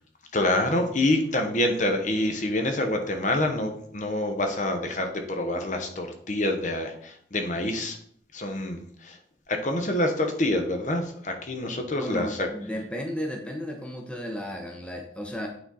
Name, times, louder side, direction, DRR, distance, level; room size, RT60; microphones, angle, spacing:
voice 1, 0.3-8.0 8.3-9.2 9.5-12.5, left 1 dB, 45° left, 4 dB, 0.9 m, -26 dB
voice 2, 12.0-15.5, equal, 5° left, 2 dB, 0.8 m, -34 dB
8.8 x 3.9 x 4.1 m, 0.62 s
head